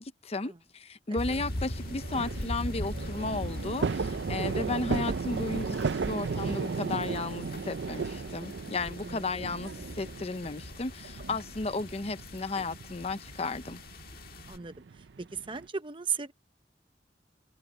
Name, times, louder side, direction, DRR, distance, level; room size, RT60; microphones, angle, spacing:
voice 1, 0.0-13.8, left 3 dB, 35° left, 0.7 m, -34 dB
sound 1, 1.2-14.6, left 1 dB, 55° left, 1.7 m, -41 dB
sound 2, 1.4-15.6, right 4 dB, 75° right, 0.5 m, -35 dB
voice 2, 15.2-16.3, right 6 dB, 30° right, 1.0 m, -36 dB
head